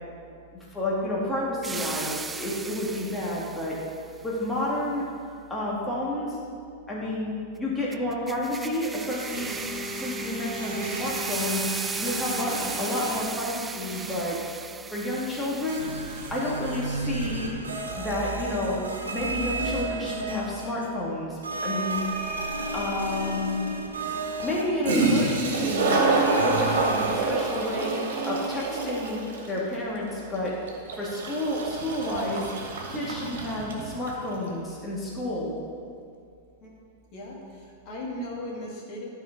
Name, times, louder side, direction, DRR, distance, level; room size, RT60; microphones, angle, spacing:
voice 1, 0.7-3.8 4.2-5.0 5.5-6.4 6.9-9.5 9.9-11.6 12.0-14.4 14.9-16.0 16.3-17.5 18.0-18.8 19.1-22.0 22.7-23.7 24.4-25.9 26.4-28.0 28.2-30.5 31.0-32.5 32.9-35.5, left 1 dB, 10° left, -6 dB, 2.0 m, -30 dB
sound 1, 1.6-4.0 7.9-16.8, right 4 dB, 15° right, 0.3 m, -36 dB
sound 2, 9.1-13.6 13.9-14.5 15.7-21.0 21.4-25.5 26.1-27.2, right 2 dB, 80° right, 1.0 m, -34 dB
Toilet flush, 24.5-24.6 24.8-34.2, right 3 dB, 65° right, 1.8 m, -27 dB
voice 2, 37.1-39.1, left 1 dB, 45° left, -4 dB, 2.1 m, -37 dB
11.0 x 4.7 x 5.2 m, 2.4 s
figure-of-eight pair, 100°, 0 cm